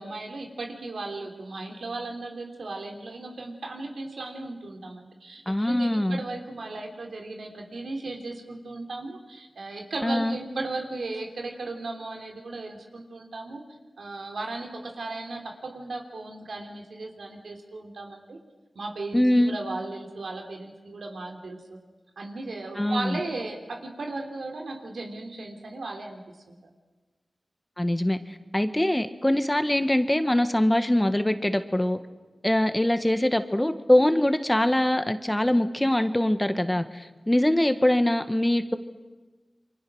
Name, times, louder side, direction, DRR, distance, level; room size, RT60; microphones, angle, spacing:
voice 1, 0.0-13.6 14.0-18.4 18.8-21.8 22.2-26.7, right 2 dB, 85° right, 2 dB, 3.4 m, -36 dB
voice 2, 5.5-6.2 10.0-10.4 19.1-19.5 22.8-23.2 27.8-28.2 28.5-32.0 32.4-38.8, left 1 dB, 15° left, 9 dB, 1.6 m, -23 dB
29.0 x 23.5 x 6.4 m, 1.2 s
cardioid pair, 45°, 0 cm